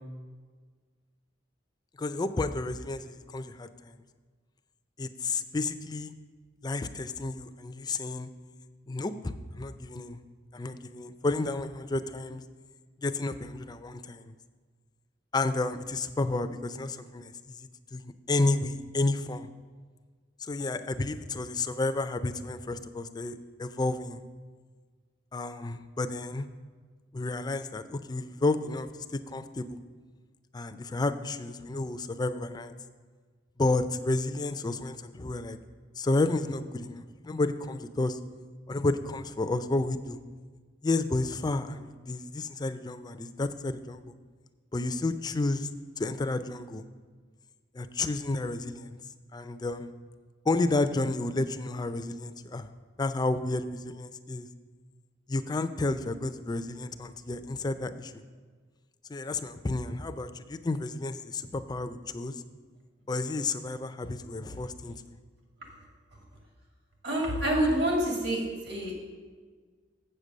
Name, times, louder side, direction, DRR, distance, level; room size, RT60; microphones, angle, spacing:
voice 1, 2.0-3.9 5.0-6.1 6.6-8.3 8.9-10.2 10.5-12.4 13.0-14.3 15.3-18.0 18.3-19.5 20.4-24.2 25.3-26.5 27.1-29.8 30.5-32.7 33.6-35.6 36.0-38.2 38.7-40.2 40.8-44.0 44.7-45.7 46.0-46.8 47.7-48.9 49.3-49.9 50.5-52.7 53.0-54.5 55.3-58.1 59.1-62.4 63.1-65.0, left 2 dB, 20° left, 10 dB, 0.4 m, -31 dB
voice 2, 67.0-68.9, right 1 dB, 65° right, 0 dB, 2.3 m, -27 dB
7.8 x 6.7 x 6.3 m, 1.5 s
head